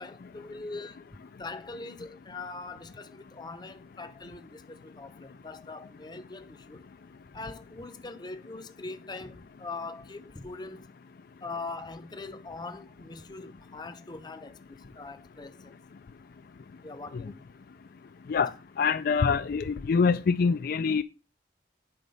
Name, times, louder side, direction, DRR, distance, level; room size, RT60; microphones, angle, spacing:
voice 1, 0.0-6.9 7.3-10.9 11.4-15.7 16.8-17.4, left 3 dB, 25° left, 0.7 m, -42 dB
voice 2, 18.8-21.0, left 5 dB, 55° left, 0.4 m, -25 dB
9.4 x 4.1 x 5.4 m
head